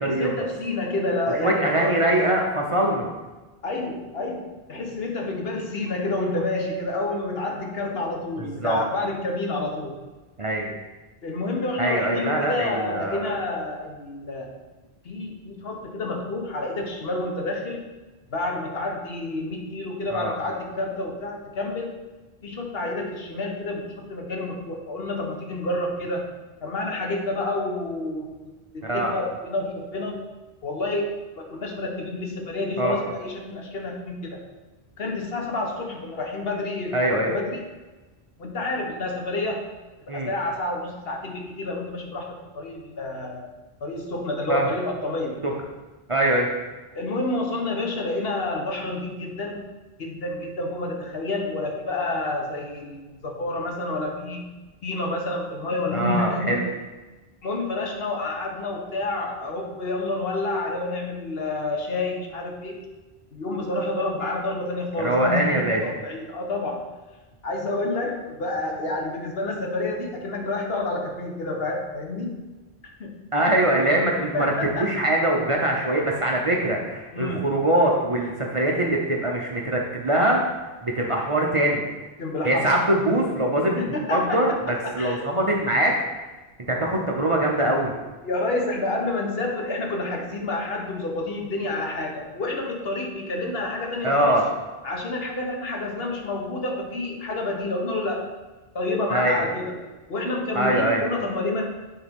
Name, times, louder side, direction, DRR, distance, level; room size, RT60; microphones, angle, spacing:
voice 1, 0.0-2.0 3.6-10.0 11.2-14.5 15.0-17.9 18.3-22.0 22.4-26.3 26.6-28.3 28.7-30.2 30.6-34.4 35.0-37.6 38.4-39.6 40.1-43.4 43.8-45.4 46.9-49.6 50.0-56.6 57.4-62.8 63.3-66.9 67.4-72.4 72.8-73.1 74.1-74.9 77.1-77.5 82.2-82.7 83.8-85.2 88.2-94.4 94.8-98.3 98.7-99.8 100.1-101.6, left 2 dB, 65° left, 1 dB, 1.2 m, -29 dB
voice 2, 1.4-3.1 8.6-8.8 10.4-10.7 11.8-13.3 20.1-20.3 28.8-29.1 32.8-33.0 36.9-37.3 40.1-40.3 44.5-44.7 45.4-45.5 46.1-46.5 55.9-56.7 65.0-65.8 73.3-74.5 74.8-80.4 80.8-81.8 82.4-83.8 84.1-85.9 86.2-86.3 86.7-87.9 94.0-94.4 99.1-99.4 100.6-101.0, right 1 dB, 35° right, -1 dB, 0.7 m, -23 dB
8.9 x 3.9 x 3.6 m, 1.2 s
omnidirectional pair, 1.1 m